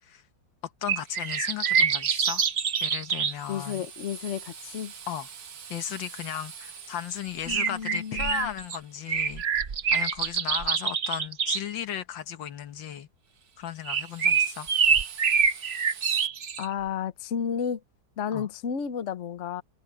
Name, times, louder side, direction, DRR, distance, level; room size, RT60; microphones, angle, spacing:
voice 1, 0.8-2.4 2.8-3.9 5.1-5.3 5.7-9.4 9.9-13.1 13.6-14.7 18.3-18.5, left 10 dB, 75° left, 1.8 m, -35 dB
sound 1, 0.9-3.3 7.5-8.8 9.1-11.6 13.8-16.7, right 6 dB, 45° right, 0.9 m, -25 dB
Drill, 0.9-9.9 13.3-16.3, right 7 dB, 65° right, 2.2 m, -47 dB
voice 2, 3.5-4.9 7.5-8.5 16.6-17.8 18.2-19.6, left 8 dB, 50° left, 1.0 m, -32 dB
omnidirectional pair, 2.1 m